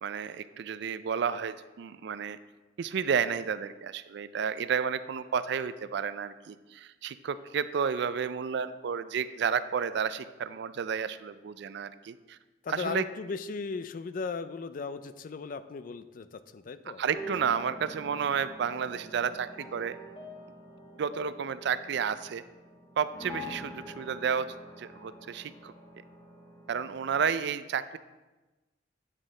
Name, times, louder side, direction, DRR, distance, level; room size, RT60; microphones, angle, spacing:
voice 1, 0.0-2.4 2.8-12.4 12.7-13.0 17.0-20.0 21.0-22.4 23.0-24.5 24.8-25.7 26.7-28.0, right 7 dB, 65° right, 14 dB, 0.4 m, -31 dB
voice 2, 12.6-17.0, left 4 dB, 45° left, 12 dB, 0.4 m, -37 dB
sound 1, 17.1-27.3, right 1 dB, 25° left, 1.5 m, -46 dB
9.0 x 6.3 x 3.8 m, 1.1 s
head